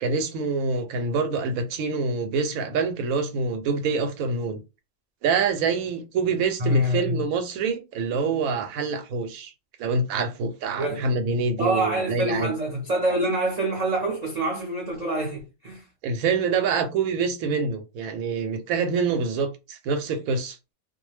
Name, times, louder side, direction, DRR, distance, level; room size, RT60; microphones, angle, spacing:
voice 1, 0.0-4.6 5.2-9.5 9.8-12.5 16.0-20.6, right 4 dB, 80° right, 1.0 m, -26 dB
voice 2, 6.6-7.2 10.8-11.1 11.6-15.9, right 1 dB, 45° right, 0.5 m, -26 dB
2.4 x 2.1 x 3.1 m
omnidirectional pair, 1.5 m